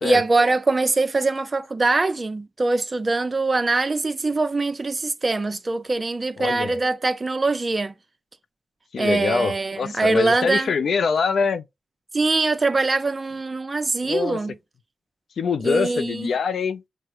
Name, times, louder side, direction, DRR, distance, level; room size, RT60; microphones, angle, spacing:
voice 1, 0.0-7.9 9.0-10.7 12.1-14.5 15.6-16.3, right 3 dB, 35° right, 0.6 m, -23 dB
voice 2, 6.4-6.7 8.9-11.6 14.0-14.4 15.4-16.8, left 5 dB, 75° left, 0.4 m, -24 dB
6.0 x 2.1 x 2.7 m
cardioid pair, 60°, 0 cm